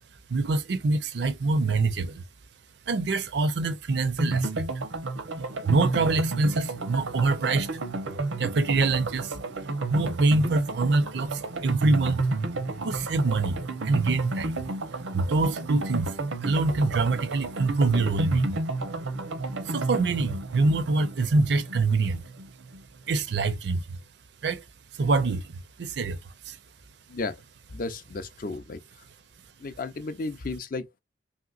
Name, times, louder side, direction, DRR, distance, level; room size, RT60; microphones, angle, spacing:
voice 1, 0.3-2.2 2.9-4.7 5.6-7.7 8.4-9.3 9.9-12.2 12.8-13.6 13.8-14.7 15.1-16.1 16.4-18.6 19.7-22.2 23.1-23.8 24.4-24.6 25.0-25.4 25.8-26.2 26.5-26.6, right 3 dB, 60° right, 0.5 m, -25 dB
sound 1, 4.2-22.8 23.1-23.2 23.4-23.5, right 2 dB, 90° right, 0.8 m, -31 dB
voice 2, 27.7-28.8 29.6-31.0, left 3 dB, 45° left, 0.4 m, -33 dB
3.2 x 2.8 x 2.4 m
head